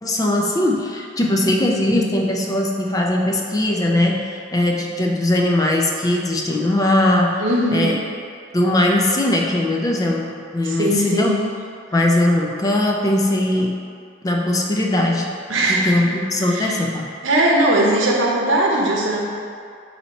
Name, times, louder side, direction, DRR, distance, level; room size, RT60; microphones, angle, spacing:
voice 1, 0.0-7.4 7.7-8.0 8.5-11.4 11.9-13.9 14.2-15.4 15.6-17.1, left 1 dB, 20° left, 0 dB, 0.3 m, -20 dB
voice 2, 7.4-7.9 10.6-11.4 15.5-16.0 16.5-16.7 17.2-19.2, right 1 dB, 85° right, -3 dB, 0.8 m, -19 dB
4.3 x 2.8 x 4.0 m, 2.3 s
head